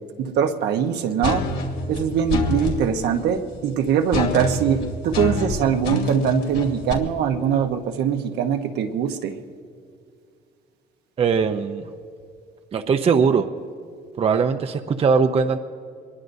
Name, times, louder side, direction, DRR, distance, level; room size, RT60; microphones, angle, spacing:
voice 1, 0.2-1.4 1.9-9.3, right 8 dB, 75° right, 5 dB, 1.1 m, -22 dB
sound 1, 1.2-2.8 4.1-6.9, left 3 dB, 75° left, 2.5 m, -26 dB
voice 2, 11.2-11.9 12.7-13.5 14.2-15.6, right 5 dB, 35° right, 7 dB, 0.6 m, -20 dB
24.5 x 21.0 x 2.7 m, 2.3 s
cardioid pair, 110°, 17 cm